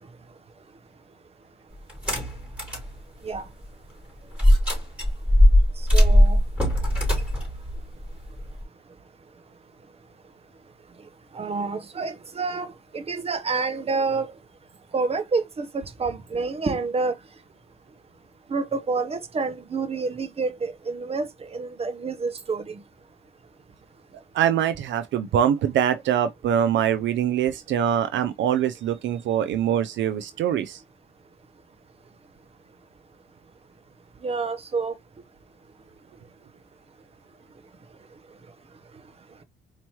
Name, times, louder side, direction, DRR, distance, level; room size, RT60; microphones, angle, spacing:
sound 1, 1.9-2.9 3.3-3.4 4.4-8.6, equal, 5° right, 3.3 m, -19 dB
voice 1, 5.9-6.4 11.3-14.3 14.9-17.1 18.5-22.8 34.2-34.9, right 4 dB, 30° right, 0.8 m, -28 dB
voice 2, 24.3-30.8, right 9 dB, 70° right, 0.5 m, -23 dB
4.5 x 3.0 x 2.9 m
cardioid pair, 90°, 20 cm